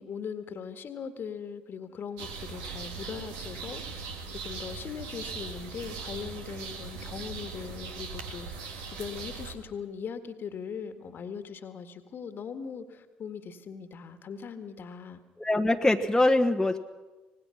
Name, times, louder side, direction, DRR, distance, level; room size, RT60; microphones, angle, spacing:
voice 1, 0.0-4.0 4.4-15.2, left 6 dB, 50° left, 9 dB, 1.8 m, -40 dB
sound 1, 2.2-9.5, right 5 dB, 75° right, 1.8 m, -39 dB
voice 2, 15.4-16.8, left 2 dB, 10° left, 2 dB, 1.3 m, -23 dB
25.0 x 19.0 x 5.9 m, 1.2 s
hypercardioid pair, 50°, 5 cm